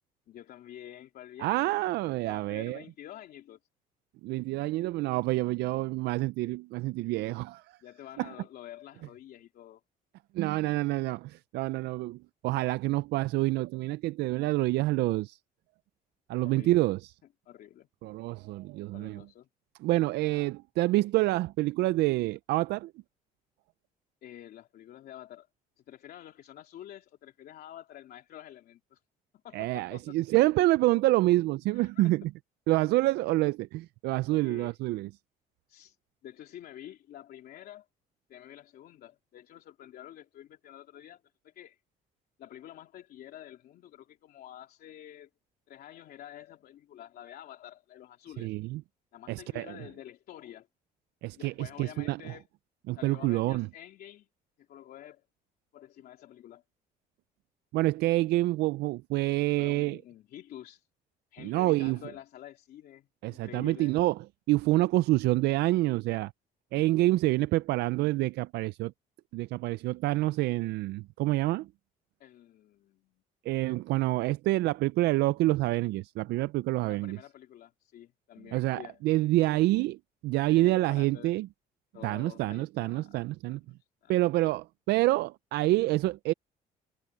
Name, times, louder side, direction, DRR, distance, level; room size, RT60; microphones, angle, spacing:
voice 1, 0.3-1.7 2.2-3.6 7.8-9.8 16.4-16.7 17.4-17.9 18.9-19.5 24.2-25.5 25.8-29.0 29.4-30.2 31.7-32.2 34.3-34.7 35.7-36.0 36.2-37.9 38.3-41.8 42.4-45.3 45.7-48.5 49.1-50.7 51.3-52.4 52.9-54.3 54.6-55.3 55.7-56.6 59.6-60.9 61.3-64.0 72.2-73.2 76.9-79.0 79.7-79.9 80.5-81.3 81.9-84.2, left 12 dB, 65° left, 3.2 m, -49 dB
voice 2, 1.4-2.8 4.2-7.6 8.2-8.3 10.3-15.4 16.3-17.1 18.0-19.2 19.8-22.9 29.5-32.2 32.7-35.1 48.4-48.8 49.3-49.8 51.2-52.2 52.9-53.7 57.7-60.0 61.4-62.0 63.2-64.2 64.5-66.3 66.7-68.9 69.3-71.7 73.4-77.2 78.5-80.0 80.2-81.5 82.0-83.6 84.1-86.3, right 18 dB, 80° right, 0.4 m, -27 dB
cardioid pair, 110°, 17 cm